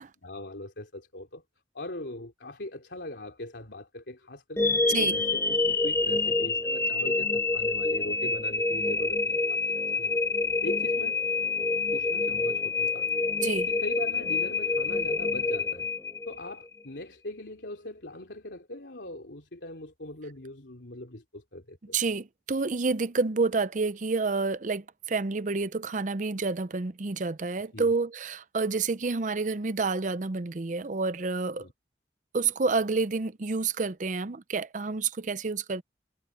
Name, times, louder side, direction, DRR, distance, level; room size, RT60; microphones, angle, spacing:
voice 1, 0.2-1.4 1.7-10.2 10.6-11.2 11.9-13.1 13.7-15.9 16.2-22.0 27.7-27.9 31.6-31.7, left 1 dB, 85° left, 3.2 m, -40 dB
sound 1, 4.6-16.7, left 3 dB, 15° left, 0.5 m, -27 dB
voice 2, 21.9-31.7 32.3-35.8, right 4 dB, 45° right, 0.6 m, -29 dB
head